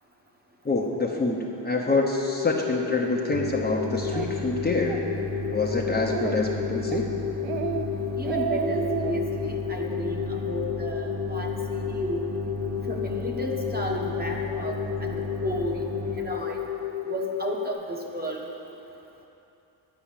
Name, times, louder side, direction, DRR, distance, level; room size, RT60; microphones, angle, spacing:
voice 1, 0.6-5.0 5.5-7.1, left 3 dB, 20° left, -1 dB, 0.9 m, -26 dB
sound 1, 1.9-17.7, left 12 dB, 70° left, 0.9 m, -33 dB
sound 2, 3.3-16.2, equal, 45° right, 1.3 m, -34 dB
Speech, 4.1-4.3 4.7-5.0 5.4-5.5 5.9-6.5 6.9-7.1 7.4-7.8 8.1-9.2, right 8 dB, 80° right, 0.7 m, -30 dB
voice 2, 8.1-12.2 12.9-15.8 16.1-16.6 17.1-18.4, right 1 dB, 20° right, 0 dB, 1.3 m, -33 dB
10.5 x 5.6 x 7.4 m, 2.9 s
cardioid pair, 90°, 45 cm